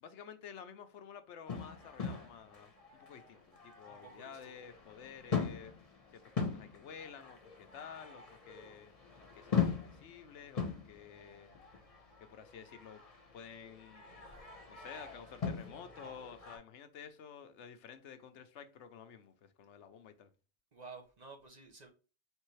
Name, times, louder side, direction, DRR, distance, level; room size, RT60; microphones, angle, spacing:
voice 1, 0.0-5.7 6.1-8.9 9.4-11.5 12.2-13.0 13.3-14.1 14.7-20.3, left 7 dB, 80° left, 1.0 m, -51 dB
sound 1, 1.5-16.6, left 6 dB, 35° left, 1.0 m, -41 dB
voice 2, 3.9-4.5 20.7-21.9, right 4 dB, 40° right, 0.9 m, -52 dB
4.5 x 3.3 x 3.1 m
omnidirectional pair, 1.2 m